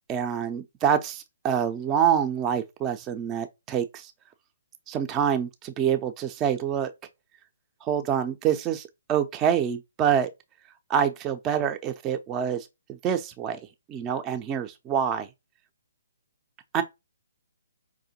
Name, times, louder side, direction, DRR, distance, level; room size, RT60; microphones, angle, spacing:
voice 1, 0.1-4.1 4.9-6.9 7.8-10.3 10.9-13.6 13.9-15.3 16.7-16.8, right 8 dB, 20° right, 0.3 m, -26 dB
4.8 x 2.1 x 2.8 m
figure-of-eight pair, 135°, 0 cm